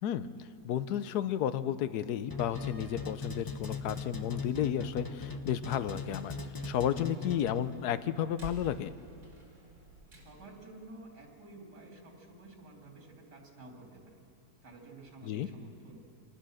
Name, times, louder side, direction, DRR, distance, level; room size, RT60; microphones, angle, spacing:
voice 1, 0.0-6.4 6.6-8.9 15.2-15.5, left 10 dB, 75° left, 13 dB, 1.2 m, -32 dB
sound 1, 2.3-7.8, left 4 dB, 20° left, 0.5 m, -39 dB
Slam, 2.3-10.7, right 2 dB, 70° right, 4.5 m, -55 dB
voice 2, 10.1-14.2 14.6-16.0, right 2 dB, 85° right, 1 dB, 3.5 m, -51 dB
25.5 x 19.0 x 6.4 m, 2.8 s
omnidirectional pair, 1.8 m